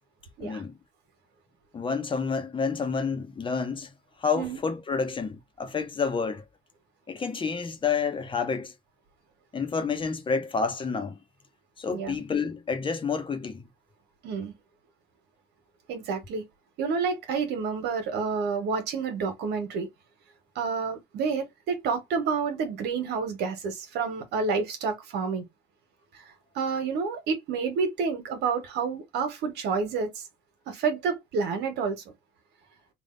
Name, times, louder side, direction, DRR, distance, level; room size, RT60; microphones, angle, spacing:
voice 1, 0.4-0.8 1.7-3.9 4.2-6.4 7.1-8.7 9.5-11.2 11.8-13.6, left 5 dB, 30° left, 0.9 m, -29 dB
voice 2, 11.9-12.2 14.2-14.5 15.9-16.4 16.8-19.9 20.5-25.4 26.5-30.2 30.7-32.0, right 5 dB, 80° right, 1.5 m, -29 dB
3.5 x 2.6 x 3.9 m
cardioid pair, 110°, 17 cm